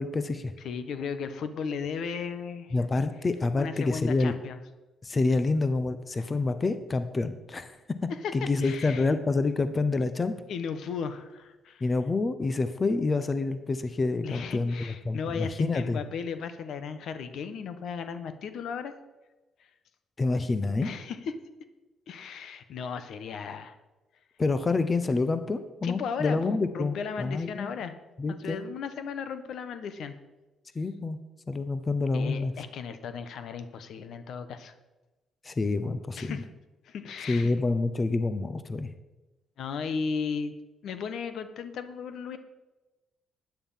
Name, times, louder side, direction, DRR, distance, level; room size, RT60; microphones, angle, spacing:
voice 1, 0.0-0.5 2.7-4.4 5.0-7.8 8.0-10.3 11.8-16.0 20.2-20.9 24.4-27.7 28.2-28.6 30.7-31.2 31.5-32.5 35.4-36.4 37.3-38.9, left 3 dB, 30° left, 11 dB, 0.9 m, -27 dB
voice 2, 0.6-2.8 3.5-4.6 6.2-6.3 8.1-8.3 8.6-9.1 10.5-11.8 14.2-18.9 19.6-19.7 20.8-21.3 22.1-23.8 25.8-27.9 28.3-30.1 32.1-34.7 36.2-36.5 36.8-37.5 39.6-40.5 40.8-42.4, left 6 dB, 70° left, 10 dB, 1.2 m, -35 dB
13.0 x 9.4 x 5.7 m, 1.1 s
cardioid pair, 90°, 0 cm